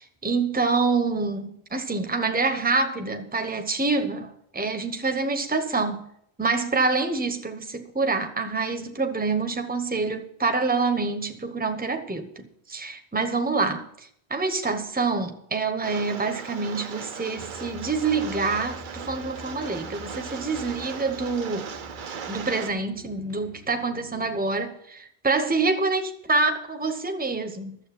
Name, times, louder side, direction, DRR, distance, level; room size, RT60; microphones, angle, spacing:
voice 1, 0.0-6.1 6.4-13.9 14.3-21.7 22.3-27.8, right 3 dB, 10° right, 0.9 m, -26 dB
Rain, 15.8-22.7, right 6 dB, 50° right, 0.8 m, -38 dB
sound 1, 17.3-24.5, left 1 dB, 90° left, 5.5 m, -46 dB
12.5 x 7.7 x 7.5 m
omnidirectional pair, 1.1 m